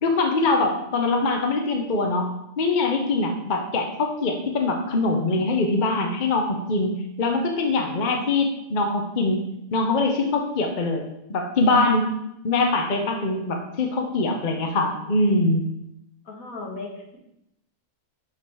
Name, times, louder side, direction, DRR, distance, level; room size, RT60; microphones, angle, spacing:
voice 1, 0.0-9.4 9.7-12.1 12.4-15.6, left 2 dB, 40° left, 3 dB, 0.9 m, -23 dB
voice 2, 16.3-17.2, left 3 dB, 70° left, 0 dB, 1.9 m, -36 dB
5.8 x 5.1 x 6.2 m, 0.83 s
omnidirectional pair, 1.5 m